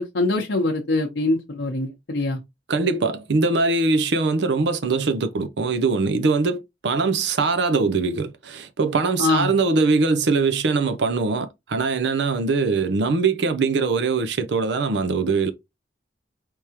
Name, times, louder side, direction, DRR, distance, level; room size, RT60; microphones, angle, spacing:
voice 1, 0.0-2.4 9.2-9.5, left 2 dB, 85° left, 0.8 m, -23 dB
voice 2, 2.7-15.5, right 4 dB, 70° right, 0.5 m, -22 dB
4.6 x 3.4 x 2.9 m
head